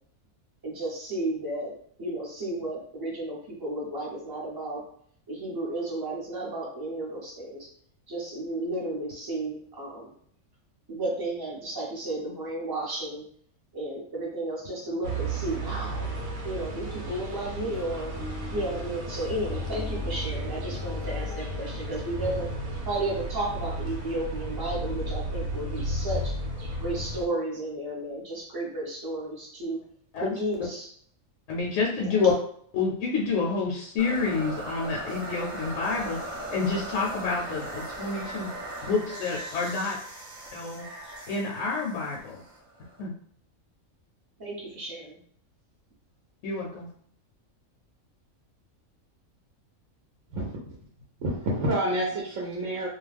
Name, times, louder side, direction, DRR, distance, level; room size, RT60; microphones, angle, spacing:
voice 1, 0.6-1.7 2.0-4.8 5.3-7.7 8.1-10.1 10.9-13.3 13.7-18.1 18.5-22.5 22.9-26.3 26.7-29.8 30.2-30.9 32.0-32.1 44.4-45.2, right 1 dB, 20° right, -4 dB, 0.6 m, -33 dB
sound 1, 15.0-27.3, right 1 dB, 90° right, 1.1 m, -33 dB
sound 2, 15.9-21.4, left 2 dB, 30° left, 0.6 m, -46 dB
voice 2, 31.5-32.3 32.7-36.2 36.5-38.5 38.9-40.0 40.5-40.9 41.3-42.4 43.0-43.1 46.4-46.9, left 4 dB, 70° left, -2 dB, 0.9 m, -28 dB
sound 3, 34.0-43.0, right 1 dB, 40° right, 1.0 m, -39 dB
voice 3, 50.3-50.7 51.2-52.9, right 1 dB, 70° right, -4 dB, 0.9 m, -28 dB
2.4 x 2.2 x 3.3 m, 0.62 s
omnidirectional pair, 1.4 m